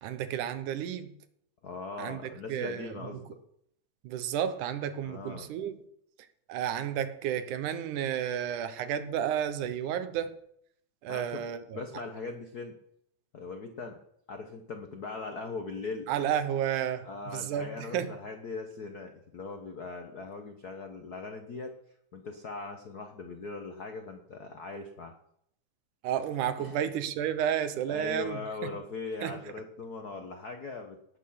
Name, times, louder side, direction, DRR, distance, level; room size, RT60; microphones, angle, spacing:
voice 1, 0.0-1.1 2.0-3.1 4.0-5.8 6.5-10.3 11.0-11.8 16.1-18.1 26.0-28.7 29.2-29.4, right 9 dB, 85° right, 2.5 m, -32 dB
voice 2, 1.6-3.4 5.0-5.5 11.1-11.4 11.7-12.7 13.3-14.0 14.3-16.1 17.0-21.7 22.1-25.1 26.6-26.8 27.9-31.0, left 4 dB, 85° left, 0.8 m, -40 dB
17.5 x 8.7 x 5.7 m
omnidirectional pair, 3.5 m